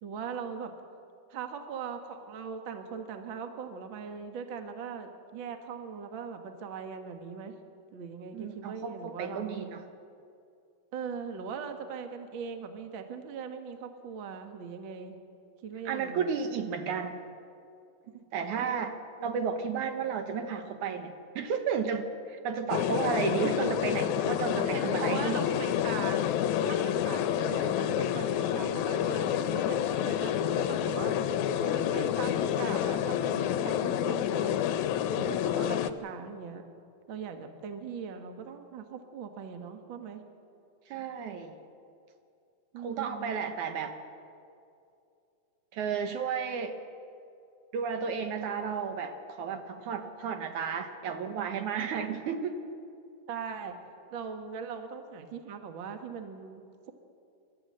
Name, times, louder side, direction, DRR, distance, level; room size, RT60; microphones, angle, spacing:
voice 1, 0.0-0.7 1.3-7.6 7.9-9.6 10.9-15.2 15.6-16.3 18.0-18.2 18.6-18.7 24.5-26.3 26.6-31.2 31.6-34.6 35.2-36.6 37.1-40.2 42.7-43.3 53.3-53.8 54.1-56.9, right 6 dB, 55° right, 6 dB, 1.5 m, -40 dB
voice 2, 8.3-9.8 15.9-17.2 18.3-18.9 19.2-25.5 40.9-41.5 42.8-43.9 45.7-46.8 47.7-52.6, right 6 dB, 70° right, 7 dB, 2.2 m, -33 dB
sound 1, 22.7-35.9, left 10 dB, 75° left, 1.9 m, -29 dB
28.5 x 13.0 x 7.7 m, 2.6 s
omnidirectional pair, 3.9 m